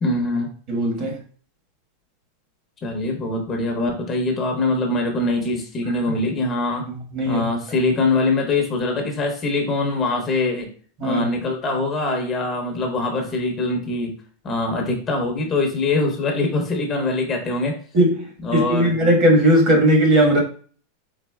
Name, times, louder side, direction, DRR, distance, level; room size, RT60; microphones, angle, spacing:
voice 1, 0.0-0.5 2.8-6.8 7.3-10.7 11.0-14.1 14.4-17.8 18.4-18.9, left 2 dB, 20° left, 0.8 m, -23 dB
voice 2, 0.7-1.2 6.8-7.8 11.0-11.2 17.9-20.4, right 1 dB, 40° right, 1.3 m, -18 dB
4.1 x 3.9 x 2.2 m
supercardioid pair, 155°, 0 cm